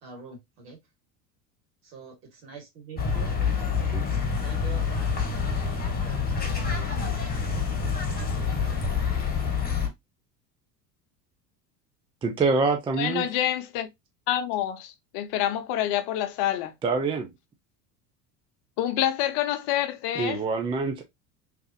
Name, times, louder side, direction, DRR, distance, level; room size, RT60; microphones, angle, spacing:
voice 1, 0.0-0.8 1.9-3.3 4.4-5.4 6.0-7.2 8.1-8.4, right 4 dB, 70° right, 2.1 m, -45 dB
sound 1, 3.0-9.9, left 5 dB, 20° left, 1.1 m, -27 dB
voice 2, 12.2-13.3 16.8-17.3 20.1-21.0, right 4 dB, 10° right, 0.3 m, -25 dB
voice 3, 13.0-13.9 14.3-16.7 18.8-20.4, left 12 dB, 55° left, 0.7 m, -27 dB
3.2 x 2.8 x 2.7 m
hypercardioid pair, 75°, 49 cm